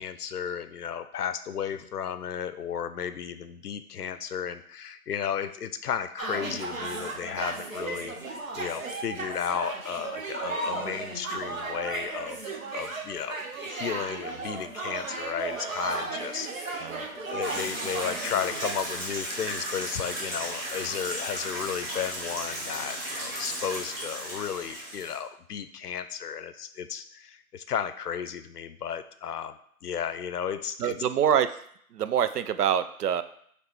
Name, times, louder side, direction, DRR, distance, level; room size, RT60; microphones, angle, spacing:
voice 1, 0.0-8.1 8.5-12.4 12.7-16.9 17.3-29.6 29.8-31.0, left 8 dB, 90° left, 12 dB, 0.6 m, -34 dB
sound 1, 6.2-18.8, right 3 dB, 60° right, 1.0 m, -35 dB
sound 2, 17.4-25.2, right 1 dB, 40° right, 1.7 m, -35 dB
voice 2, 30.8-31.6 31.9-33.2, right 9 dB, 90° right, 12 dB, 0.5 m, -25 dB
5.0 x 3.3 x 3.0 m, 0.65 s
hypercardioid pair, 180°, 45 cm